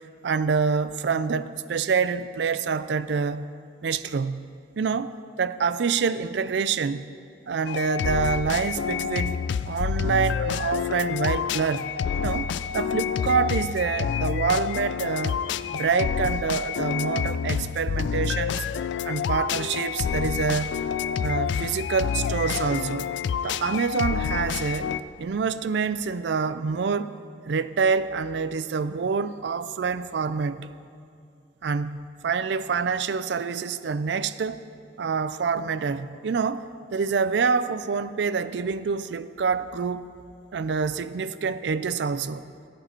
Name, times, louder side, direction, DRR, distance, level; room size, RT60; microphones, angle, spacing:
voice 1, 0.2-3.5 3.8-4.5 4.8-7.1 7.5-9.4 9.6-11.9 12.2-12.5 12.7-15.4 15.7-18.7 19.0-20.8 21.2-23.1 23.4-30.7 31.6-34.6 35.0-36.6 36.9-40.1 40.5-42.4, right 5 dB, 65° right, 14 dB, 0.4 m, -26 dB
sound 1, 7.7-25.0, left 7 dB, 75° left, 0.3 m, -28 dB
15.0 x 9.4 x 4.4 m, 2.4 s
head